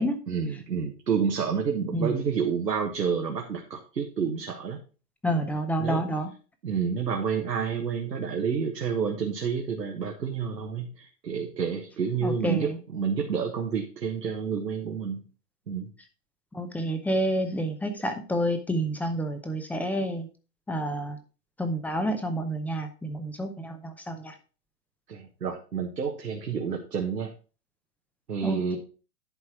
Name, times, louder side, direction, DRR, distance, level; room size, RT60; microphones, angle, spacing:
voice 1, 0.3-4.8 5.3-5.4 5.8-6.0 6.6-15.2 15.7-15.9 25.1-27.3 28.3-28.8, right 6 dB, 90° right, 2 dB, 1.5 m, -29 dB
voice 2, 5.2-6.3 12.2-12.8 16.5-20.3 20.7-21.2 21.6-24.3 28.4-28.8, right 1 dB, 5° left, 7 dB, 0.6 m, -29 dB
11.0 x 4.3 x 4.6 m, 0.35 s
hypercardioid pair, 120°, 48 cm